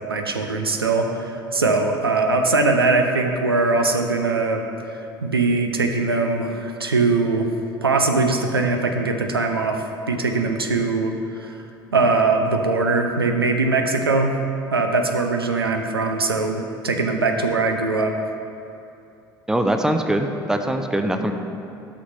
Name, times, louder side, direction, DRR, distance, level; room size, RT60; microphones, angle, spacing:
voice 1, 0.1-4.6 5.2-7.5 7.8-11.6 11.9-14.4 14.7-18.2, right 3 dB, 85° right, 4 dB, 0.5 m, -21 dB
voice 2, 19.5-21.3, right 1 dB, 5° right, 6 dB, 0.5 m, -22 dB
11.0 x 6.1 x 2.7 m, 2.7 s
figure-of-eight pair, 65°, 12 cm